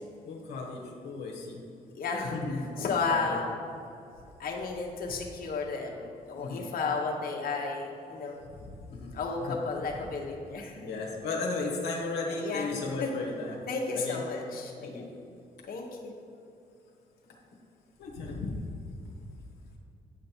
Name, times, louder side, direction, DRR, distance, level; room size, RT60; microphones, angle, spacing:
voice 1, 0.2-1.6 2.3-2.7 3.2-3.4 6.3-6.6 8.5-9.1 9.5-9.6 10.8-13.6 13.9-14.2 14.8-15.1 18.0-18.7, left 3 dB, 85° left, -1 dB, 1.2 m, -35 dB
voice 2, 1.9-3.6 4.4-8.4 9.1-10.8 12.3-12.7 13.0-13.1 13.7-15.1 15.7-16.1, left 4 dB, 60° left, -1 dB, 1.2 m, -33 dB
9.1 x 5.3 x 4.4 m, 2.6 s
supercardioid pair, 60°, 17 cm